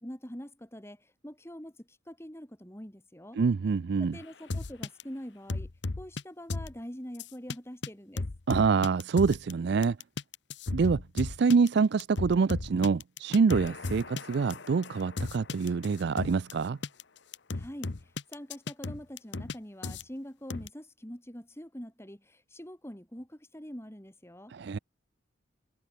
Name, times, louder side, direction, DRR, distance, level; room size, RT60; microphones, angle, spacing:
voice 1, 0.0-3.4 4.0-5.7 6.0-8.3 17.5-24.5, equal, 15° left, 3.0 m, -44 dB
voice 2, 3.4-4.1 8.5-10.0 10.7-16.8 24.5-24.8, right 5 dB, 60° right, 0.4 m, -26 dB
sound 1, 4.5-5.0 5.5-6.2 6.5-6.7 7.2-7.6 7.8-7.9 8.2-9.5 9.8-16.5 16.8-17.0 17.3-19.5 19.8-20.0 20.5-20.7, left 3 dB, 60° left, 0.9 m, -35 dB
head